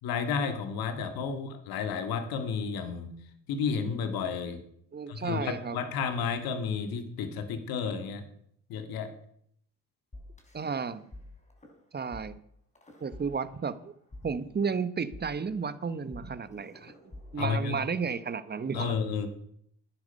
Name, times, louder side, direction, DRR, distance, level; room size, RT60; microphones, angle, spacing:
voice 1, 0.0-3.1 3.5-4.6 5.1-8.2 8.7-9.1 17.4-17.8 18.7-19.3, left 6 dB, 70° left, 8 dB, 2.0 m, -31 dB
voice 2, 4.9-5.8 10.5-11.0 11.9-12.4 13.0-13.9 14.2-16.9 17.3-18.9, right 5 dB, 25° right, 14 dB, 1.0 m, -33 dB
sound 1, 10.1-11.2 11.5-11.7 12.1-12.2 12.7-13.8 14.1-18.1, left 1 dB, 20° left, 3.8 m, -49 dB
12.0 x 10.0 x 5.3 m, 0.68 s
supercardioid pair, 70°, 37 cm